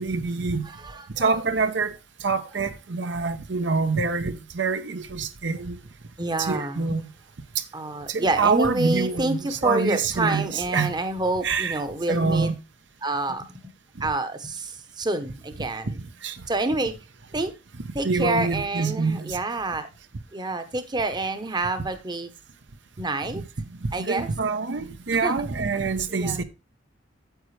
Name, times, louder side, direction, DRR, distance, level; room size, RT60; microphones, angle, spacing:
voice 1, 0.0-0.7 1.2-1.9 2.2-5.8 6.4-7.1 7.5-7.6 8.1-11.0 11.4-11.8 12.1-12.5 15.8-15.9 16.2-16.4 18.0-19.4 23.3-23.5 23.8-26.4, right 4 dB, 65° right, 0.8 m, -26 dB
voice 2, 0.6-1.4 6.2-6.9 7.7-12.5 13.0-13.5 14.0-15.9 16.5-16.9 17.3-17.5 17.9-19.9 20.3-22.3 23.0-23.4 23.9-24.3 25.2-25.3 25.8-26.4, right 2 dB, 25° right, 0.9 m, -28 dB
9.1 x 7.9 x 3.2 m
head